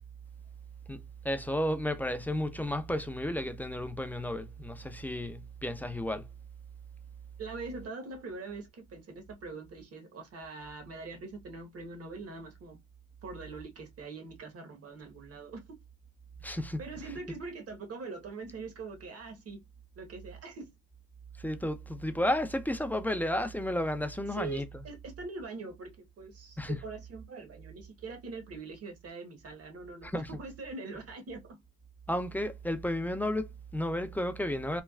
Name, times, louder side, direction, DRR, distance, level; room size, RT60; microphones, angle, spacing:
voice 1, 0.9-6.3 16.4-16.8 21.4-24.6 26.6-26.8 30.0-30.3 32.1-34.8, left 1 dB, 5° left, 0.4 m, -32 dB
voice 2, 7.4-12.8 13.2-15.8 16.8-19.6 19.9-20.7 24.3-31.6, right 4 dB, 50° right, 1.1 m, -43 dB
3.2 x 2.2 x 2.3 m
cardioid pair, 90°, 30 cm